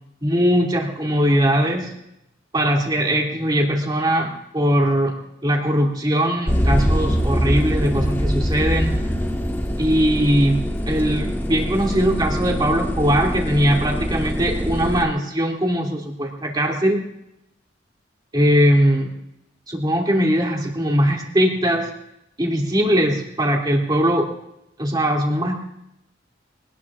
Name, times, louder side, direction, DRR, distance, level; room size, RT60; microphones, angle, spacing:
voice 1, 0.2-1.9 2.5-5.1 5.4-9.0 9.8-17.0 18.3-19.1 19.7-21.9 22.4-24.3 24.8-25.6, equal, 20° right, -1 dB, 2.7 m, -20 dB
sound 1, 6.5-15.0, equal, 10° left, 1.4 m, -23 dB
24.5 x 19.0 x 2.5 m, 0.85 s
head